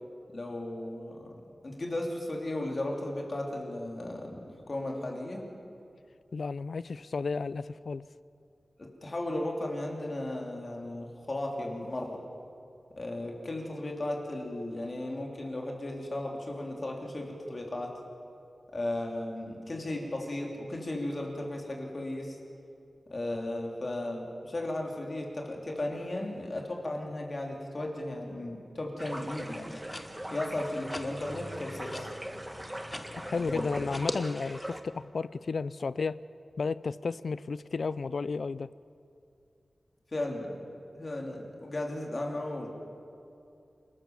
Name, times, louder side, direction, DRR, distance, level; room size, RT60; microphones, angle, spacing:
voice 1, 0.3-1.3 1.6-5.4 8.8-12.2 13.0-17.9 18.7-22.4 23.1-29.8 30.3-32.1 33.5-33.6 40.1-40.6 40.9-42.8, left 1 dB, 45° left, 0 dB, 3.2 m, -35 dB
voice 2, 6.3-8.0 33.2-36.2 36.6-38.7, left 4 dB, 70° left, 18 dB, 0.4 m, -33 dB
sound 1, 29.0-34.8, right 1 dB, 15° right, 1.3 m, -42 dB
sound 2, 29.1-34.1, left 1 dB, 25° left, 1.5 m, -42 dB
28.5 x 13.5 x 7.3 m, 2.6 s
wide cardioid pair, 95°, 0 cm